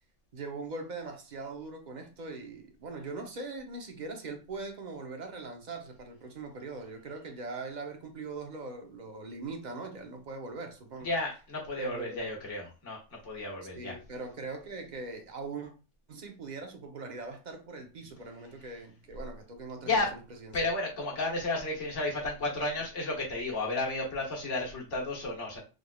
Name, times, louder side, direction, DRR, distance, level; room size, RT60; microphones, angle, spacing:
voice 1, 0.3-11.1 11.8-12.4 13.7-15.7 16.1-20.7, right 3 dB, 45° right, 0.8 m, -41 dB
voice 2, 11.0-14.0 19.8-20.1 20.5-25.6, left 2 dB, 80° left, 1.6 m, -32 dB
3.8 x 3.3 x 2.3 m
omnidirectional pair, 1.2 m